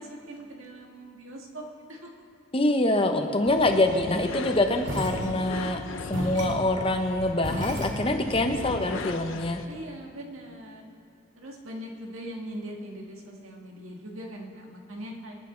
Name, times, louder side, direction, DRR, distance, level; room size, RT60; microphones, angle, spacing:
voice 1, 0.0-1.6 1.9-2.1 9.7-10.9 11.4-15.3, right 1 dB, 85° right, 0 dB, 1.8 m, -41 dB
voice 2, 2.5-5.8 6.1-9.6, left 1 dB, 25° left, 5 dB, 0.8 m, -25 dB
sound 1, 3.5-9.7, left 4 dB, 70° left, 0.6 m, -39 dB
sound 2, 4.8-5.7 6.1-8.5, equal, 65° right, 2.4 m, -34 dB
24.5 x 9.2 x 3.8 m, 2.5 s
head